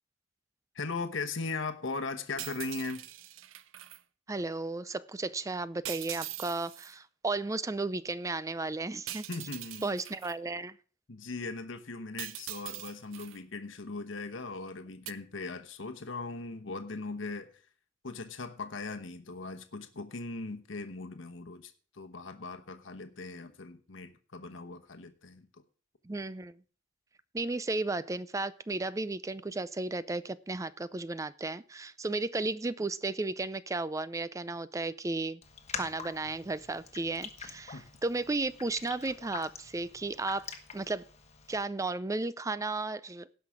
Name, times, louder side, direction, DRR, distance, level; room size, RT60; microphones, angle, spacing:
voice 1, 0.7-3.0 9.3-9.9 11.1-17.6 18.0-25.5 37.7-37.9, left 3 dB, 70° left, 7 dB, 1.1 m, -39 dB
Falling Coins, 2.4-4.0 5.8-6.9 9.1-10.3 12.2-13.4 15.1-15.2, right 13 dB, 85° right, 0.6 m, -42 dB
voice 2, 4.3-9.3 9.8-10.8 26.0-26.6 27.3-35.4 35.7-41.0 41.5-43.3, right 3 dB, 15° right, 16 dB, 0.4 m, -34 dB
Raindrop, 35.4-41.7, left 6 dB, 35° left, 1.2 m, -45 dB
17.0 x 5.8 x 4.8 m, 0.41 s
head